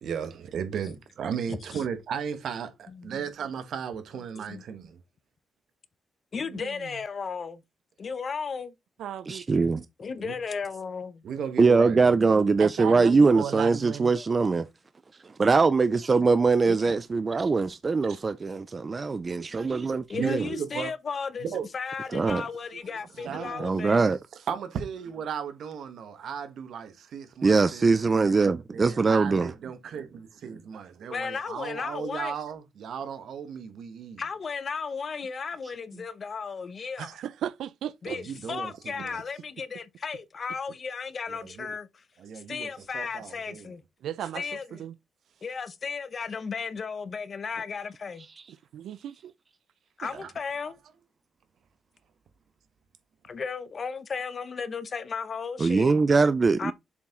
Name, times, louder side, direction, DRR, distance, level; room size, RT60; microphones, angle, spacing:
voice 1, 0.0-5.0 10.2-10.3 11.2-12.2 18.1-18.2 20.1-20.9 21.4-21.6 23.2-23.6 24.5-28.2 28.7-34.2 38.1-39.2 41.3-41.7 42.2-43.7 50.1-50.3, right 7 dB, 65° right, 1.3 m, -35 dB
voice 2, 2.9-3.3 4.5-4.6 6.3-7.6 8.0-8.7 10.0-11.1 14.2-14.3 16.7-16.9 20.1-21.4 21.7-24.1 31.1-32.3 34.2-37.1 38.0-42.0 42.3-43.8 44.3-44.8 45.4-48.3 50.0-50.8 53.3-55.9 56.6-56.7, left 5 dB, 35° left, 0.7 m, -35 dB
voice 3, 6.5-6.9 9.0-9.6 12.6-14.1 19.3-19.5 23.2-23.7 30.7-31.1 37.0-38.2 44.0-45.0 48.7-49.3 50.0-50.1, right 10 dB, 85° right, 0.4 m, -36 dB
voice 4, 9.3-9.8 11.6-14.7 15.2-20.5 22.1-22.4 23.6-24.2 27.4-29.5 55.6-56.7, right 4 dB, 25° right, 0.4 m, -22 dB
7.2 x 4.5 x 3.7 m
wide cardioid pair, 165°, 0 cm